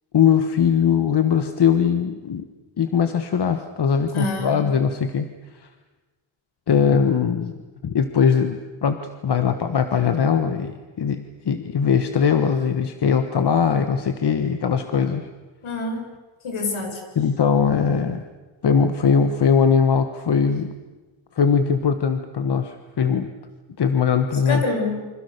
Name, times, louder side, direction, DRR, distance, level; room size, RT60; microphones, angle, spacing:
voice 1, 0.1-2.5 2.8-5.3 5.6-5.7 6.7-7.5 7.8-15.3 17.1-18.2 18.6-20.7 21.3-23.3 23.8-24.6, left 6 dB, 55° left, 8 dB, 1.4 m, -20 dB
voice 2, 4.1-4.7 15.6-16.0 16.4-17.0 24.5-25.0, left 3 dB, 75° left, 3 dB, 6.5 m, -26 dB
28.5 x 26.0 x 6.8 m, 1.2 s
wide cardioid pair, 155°, 48 cm